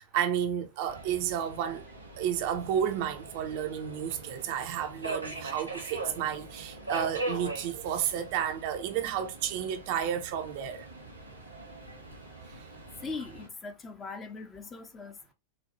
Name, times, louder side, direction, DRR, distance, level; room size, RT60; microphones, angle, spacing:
voice 1, 0.0-1.8 2.2-10.8 12.5-12.6, right 9 dB, 45° right, 0.5 m, -31 dB
Subway metro underground, 0.9-13.5, right 2 dB, 85° right, 1.1 m, -42 dB
voice 2, 13.0-15.3, left 4 dB, 20° left, 0.6 m, -40 dB
4.2 x 2.2 x 2.8 m
figure-of-eight pair, 90°, 0 cm